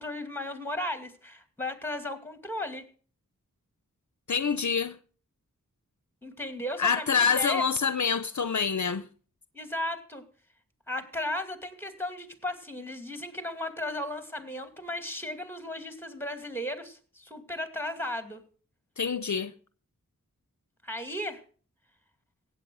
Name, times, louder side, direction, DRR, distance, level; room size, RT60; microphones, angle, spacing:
voice 1, 0.0-2.9 6.2-7.6 9.5-10.2 10.9-18.4 20.8-21.4, left 1 dB, 5° left, 2.4 m, -35 dB
voice 2, 4.3-5.0 6.8-9.1 19.0-19.5, left 6 dB, 60° left, 0.7 m, -26 dB
16.5 x 8.0 x 6.2 m
wide cardioid pair, 55°, 33 cm